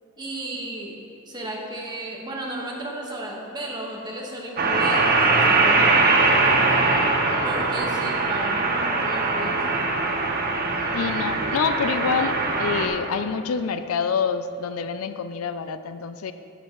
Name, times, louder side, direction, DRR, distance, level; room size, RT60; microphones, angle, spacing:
voice 1, 0.2-0.9 1.3-6.0 7.4-10.3, right 1 dB, 20° right, -2 dB, 1.3 m, -34 dB
sound 1, 4.6-12.9, right 3 dB, 45° right, 1.0 m, -21 dB
voice 2, 10.9-16.3, left 6 dB, 75° left, 11 dB, 0.4 m, -27 dB
12.5 x 9.1 x 3.0 m, 2.8 s
head